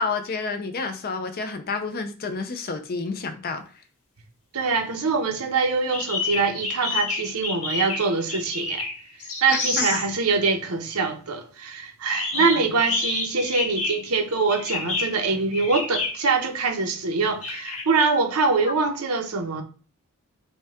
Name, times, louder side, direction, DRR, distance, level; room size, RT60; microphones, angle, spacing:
voice 1, 0.0-3.6 9.5-10.0 12.3-12.7, left 4 dB, 45° left, 0.5 m, -30 dB
voice 2, 4.5-8.9 9.4-19.6, right 4 dB, 80° right, 0.9 m, -24 dB
sound 1, 5.9-10.1 12.1-14.2 14.5-16.4 17.4-17.8, left 3 dB, 85° left, 1.6 m, -29 dB
5.3 x 2.3 x 3.5 m
head